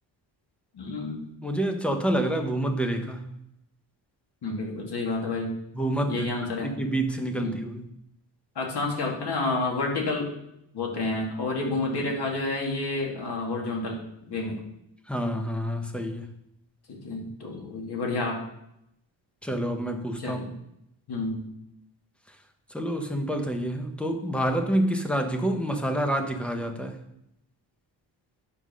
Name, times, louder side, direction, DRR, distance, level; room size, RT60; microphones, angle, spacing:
voice 1, 0.7-1.3 4.4-5.6 6.1-6.8 7.4-7.6 8.6-10.3 10.7-14.6 16.9-18.4 20.2-20.5 21.1-21.5, left 2 dB, 60° left, 0 dB, 2.2 m, -30 dB
voice 2, 1.4-3.3 5.7-6.3 6.6-7.8 15.1-16.3 19.4-20.4 22.7-27.0, right 1 dB, 5° left, 5 dB, 0.7 m, -28 dB
8.3 x 5.3 x 6.3 m, 0.80 s
wide cardioid pair, 180°, 45 cm